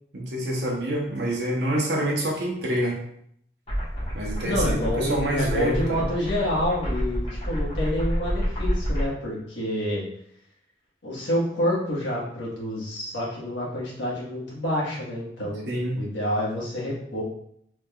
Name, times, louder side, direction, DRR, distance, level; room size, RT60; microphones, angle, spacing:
voice 1, 0.1-3.0 4.1-6.1 15.7-16.0, right 1 dB, 65° right, -1 dB, 0.8 m, -26 dB
sound 1, 3.7-9.1, equal, 30° left, 1.3 m, -28 dB
voice 2, 4.4-10.0 11.0-15.7 15.9-17.2, left 1 dB, 85° left, -5 dB, 1.4 m, -28 dB
3.5 x 3.4 x 2.3 m, 0.70 s
head